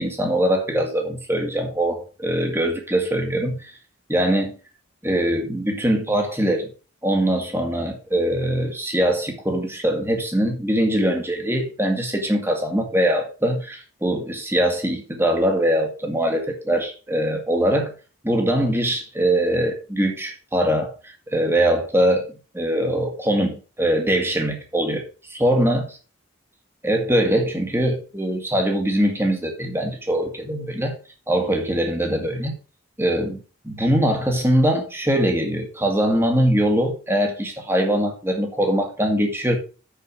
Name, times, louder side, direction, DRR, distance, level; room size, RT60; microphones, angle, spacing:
voice 1, 0.0-3.6 4.1-4.6 5.0-6.7 7.0-17.9 18.2-22.3 22.5-25.8 26.8-31.0 31.3-32.5 33.0-39.6, right 1 dB, 10° right, 2.0 m, -22 dB
7.1 x 6.9 x 6.2 m
head